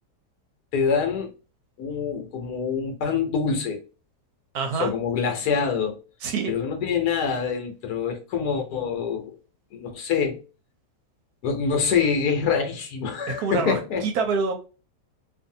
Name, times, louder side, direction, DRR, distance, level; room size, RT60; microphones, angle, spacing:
voice 1, 0.7-1.3 1.8-3.8 4.8-6.0 6.5-9.4 9.7-10.4 11.4-14.0, left 6 dB, 70° left, 1.2 m, -25 dB
voice 2, 4.5-4.9 6.2-6.5 13.3-14.5, right 5 dB, 70° right, 1.0 m, -26 dB
2.6 x 2.6 x 2.6 m
omnidirectional pair, 1.8 m